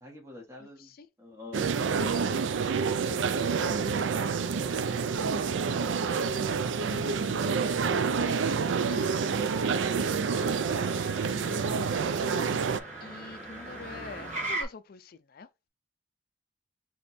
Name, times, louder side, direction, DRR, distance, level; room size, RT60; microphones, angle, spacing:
voice 1, 0.0-0.9 1.2-1.8 4.1-4.8, left 3 dB, 15° right, 1.3 m, -48 dB
sound 1, 1.5-12.8, right 5 dB, 80° right, 0.4 m, -28 dB
Motor vehicle (road), 1.6-14.6, right 2 dB, 40° right, 1.6 m, -43 dB
voice 2, 6.8-10.6 11.3-12.4 13.0-15.5, left 4 dB, 50° left, 0.4 m, -47 dB
3.4 x 3.0 x 4.1 m
head